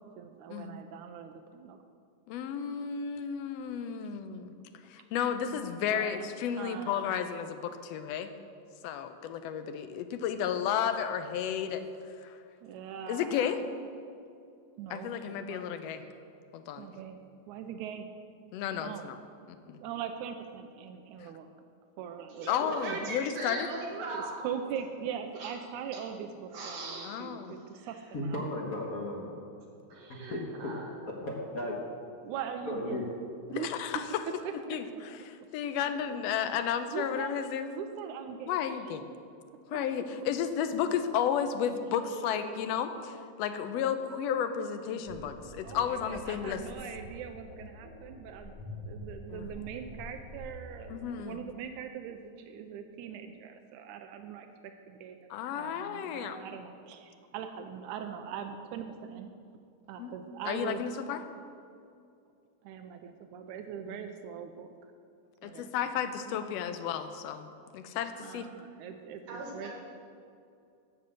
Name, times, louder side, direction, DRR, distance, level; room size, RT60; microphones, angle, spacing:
voice 1, 0.0-1.8 5.9-7.3 12.6-13.6 14.8-15.7 16.8-17.2 17.5-18.1 18.7-19.0 19.8-21.5 22.0-23.1 24.1-28.4 32.2-33.0 33.5-33.7 34.3-34.4 34.7-35.0 36.9-37.4 37.8-38.6 38.9-39.0 39.7-39.8 42.1-42.7 45.6-48.6 48.9-52.2 52.5-55.2 55.6-59.3 59.9-60.8 62.6-64.7 65.4-66.1 68.2-69.7, right 8 dB, 85° right, 6 dB, 2.1 m, -41 dB
voice 2, 2.3-4.5 4.9-8.3 8.8-11.9 12.2-12.4 13.1-13.6 14.9-16.0 16.5-16.9 18.5-19.2 19.7-19.8 22.5-23.7 27.0-27.6 33.5-34.2 34.7-34.8 35.5-37.7 38.5-39.0 39.7-46.6 49.3-49.5 50.9-51.4 55.3-56.4 60.0-60.2 60.5-61.2 65.4-67.5 67.7-68.5, left 8 dB, 75° left, 9 dB, 1.6 m, -33 dB
voice 3, 22.4-24.4 25.3-25.5 25.9-26.0 26.5-27.2 27.5-27.9 29.9-30.8 69.3-69.7, right 2 dB, 60° right, -2 dB, 3.0 m, -39 dB
voice 4, 28.1-29.3 30.1-30.7 31.1-31.8 32.7-33.0, left 1 dB, 50° left, -2 dB, 1.1 m, -35 dB
sound 1, 45.1-51.3, left 1 dB, 20° left, 1.4 m, -46 dB
11.0 x 6.8 x 7.8 m, 2.5 s
omnidirectional pair, 3.4 m